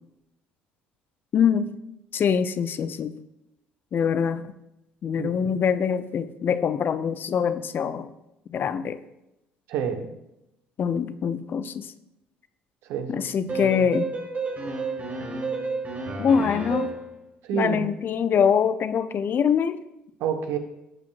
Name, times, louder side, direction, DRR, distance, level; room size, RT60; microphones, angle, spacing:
voice 1, 1.3-1.8 2.1-3.1 3.9-4.5 5.0-8.1 8.5-9.0 10.8-11.9 13.1-14.1 16.2-16.9 17.5-19.8, left 7 dB, 45° left, 13 dB, 0.6 m, -24 dB
voice 2, 9.7-10.1 12.9-13.3 13.8-13.9 17.4-17.9 20.2-20.6, right 8 dB, 60° right, 6 dB, 1.3 m, -28 dB
sound 1, 13.5-17.1, right 3 dB, 30° right, 4.3 m, -31 dB
18.5 x 8.6 x 2.6 m, 0.88 s
figure-of-eight pair, 55°, 5 cm